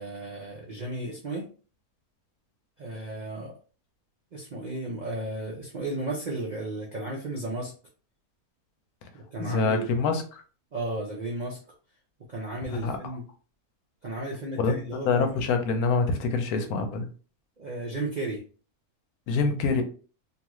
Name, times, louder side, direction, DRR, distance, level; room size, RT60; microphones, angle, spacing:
voice 1, 0.0-1.5 2.8-3.5 4.3-7.7 9.1-9.9 10.7-11.6 12.3-13.2 14.0-15.3 17.6-18.4, right 2 dB, 65° right, -2 dB, 0.4 m, -34 dB
voice 2, 9.4-10.4 12.7-13.2 14.6-14.8 15.0-17.1 19.3-19.8, left 4 dB, 85° left, 6 dB, 1.1 m, -26 dB
2.7 x 2.4 x 3.0 m, 0.38 s
omnidirectional pair, 1.5 m